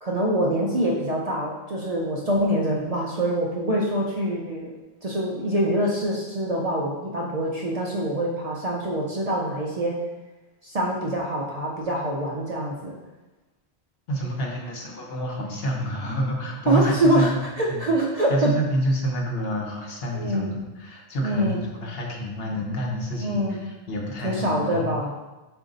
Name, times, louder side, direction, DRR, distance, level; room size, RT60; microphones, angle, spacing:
voice 1, 0.0-10.0 10.6-12.9 16.7-18.5 20.1-20.5 21.2-21.6 23.2-23.6 24.2-25.2, right 1 dB, 50° right, -3 dB, 0.5 m, -25 dB
voice 2, 14.1-17.3 17.7-17.8 18.3-24.9, equal, 65° left, 0 dB, 1.0 m, -28 dB
4.9 x 2.5 x 3.8 m, 1.1 s
omnidirectional pair, 1.1 m